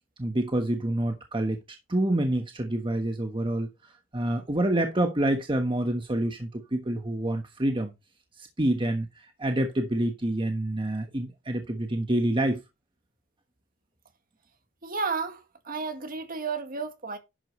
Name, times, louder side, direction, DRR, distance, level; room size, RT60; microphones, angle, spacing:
voice 1, 0.2-1.6 1.9-7.9 8.4-12.6, right 1 dB, 25° right, 1.3 m, -27 dB
voice 2, 14.8-17.2, right 4 dB, 45° right, 1.9 m, -32 dB
11.0 x 8.6 x 3.1 m
head